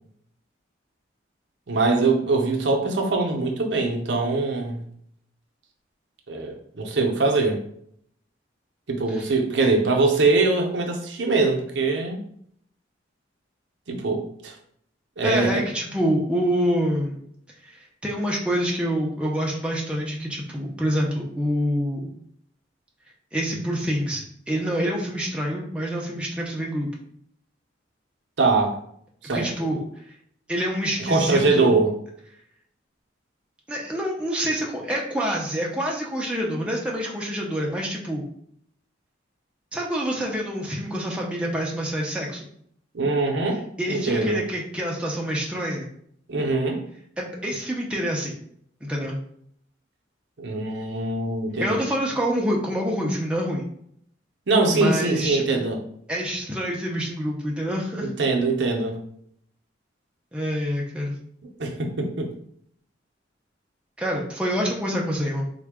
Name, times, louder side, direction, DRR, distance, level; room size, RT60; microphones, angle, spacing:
voice 1, 1.7-4.8 6.3-7.6 8.9-12.2 13.9-14.5 15.2-15.6 28.4-28.7 29.2-29.5 31.1-31.9 42.9-43.6 43.9-44.4 46.3-46.8 50.4-51.8 54.5-55.8 58.0-59.0 61.6-62.3, right 3 dB, 65° right, 2 dB, 0.6 m, -22 dB
voice 2, 15.2-17.2 17.7-22.1 23.3-26.9 29.3-29.8 30.5-31.7 33.7-38.2 39.7-42.4 43.8-45.9 47.2-48.4 48.8-49.2 51.6-53.7 54.7-55.6 56.1-58.1 60.3-61.2 64.0-65.5, equal, 5° right, -3 dB, 0.5 m, -26 dB
3.6 x 2.2 x 3.4 m, 0.67 s
head